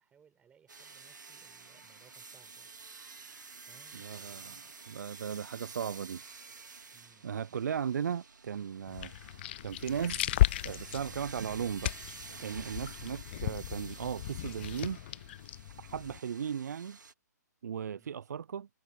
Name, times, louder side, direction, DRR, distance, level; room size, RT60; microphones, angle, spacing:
voice 1, 0.0-2.7 3.7-4.7 6.9-7.7 17.9-18.1, right 7 dB, 10° right, 4.4 m, -64 dB
sound 1, 0.7-17.1, right 4 dB, 85° right, 2.3 m, -50 dB
voice 2, 3.9-4.5 4.9-6.2 7.2-9.1 9.6-11.9 12.4-15.0 15.8-17.0 17.6-18.7, right 8 dB, 65° right, 0.5 m, -36 dB
sound 2, 8.9-16.2, left 14 dB, 35° left, 0.3 m, -35 dB
hypercardioid pair, 135°, 10 cm